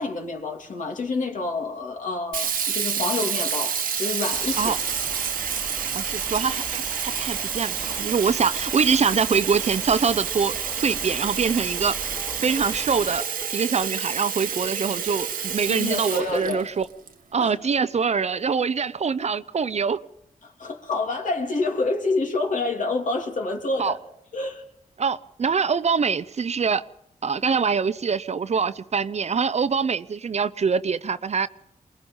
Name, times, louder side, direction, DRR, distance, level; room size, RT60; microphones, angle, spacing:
voice 1, 0.0-4.7 15.7-16.6 17.4-17.5 20.4-24.0 24.3-24.6, left 3 dB, 65° left, 3.0 m, -28 dB
Sink (filling or washing), 2.3-17.1, right 7 dB, 90° right, 1.5 m, -29 dB
sound 1, 4.3-13.2, right 1 dB, 10° right, 1.5 m, -40 dB
voice 2, 5.9-10.5 10.8-12.0 12.4-13.2 13.5-16.8 17.3-20.0 23.8-23.9 25.0-26.8 27.2-31.5, right 5 dB, 50° right, 0.7 m, -24 dB
sound 2, 10.6-16.7, equal, 25° left, 1.9 m, -46 dB
23.0 x 20.5 x 5.5 m
cardioid pair, 70°, 14 cm